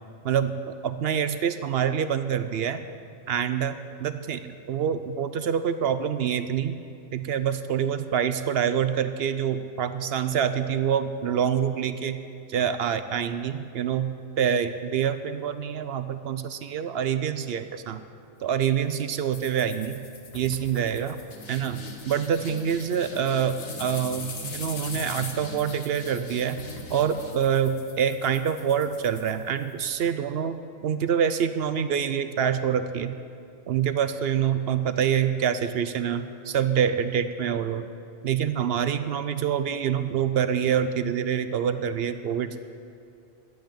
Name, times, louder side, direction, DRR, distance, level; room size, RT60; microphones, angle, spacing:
voice 1, 0.8-2.8 3.3-6.8 7.1-12.2 12.5-18.0 18.4-19.9 20.3-21.2 21.5-26.6 26.9-30.6 30.8-33.2 33.7-37.9 38.2-42.6, right 8 dB, 60° right, 11 dB, 0.7 m, -26 dB
sound 1, 19.3-29.9, left 3 dB, 90° left, 1.7 m, -40 dB
11.5 x 7.9 x 8.7 m, 2.4 s
omnidirectional pair, 1.3 m